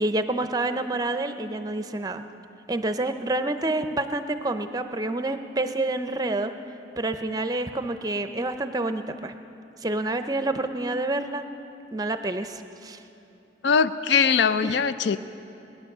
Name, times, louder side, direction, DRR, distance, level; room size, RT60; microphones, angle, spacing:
voice 1, 0.0-2.2 2.7-6.5 7.0-9.3 9.8-11.5 11.9-13.0 14.6-14.7, right 2 dB, 20° right, 9 dB, 0.6 m, -28 dB
voice 2, 13.6-15.2, left 6 dB, 80° left, 13 dB, 0.4 m, -21 dB
19.5 x 10.5 x 6.6 m, 2.9 s
head